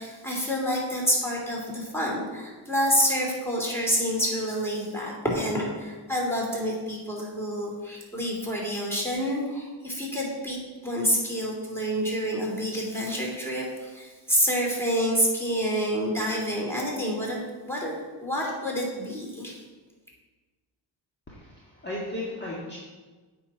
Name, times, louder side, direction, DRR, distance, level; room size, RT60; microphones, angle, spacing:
voice 1, 0.0-10.6 10.8-17.9 18.2-19.6, equal, 5° left, -3 dB, 2.9 m, -28 dB
voice 2, 21.3-22.8, left 1 dB, 25° left, -6 dB, 1.7 m, -35 dB
8.7 x 4.5 x 5.6 m, 1.3 s
cardioid pair, 90°, 43 cm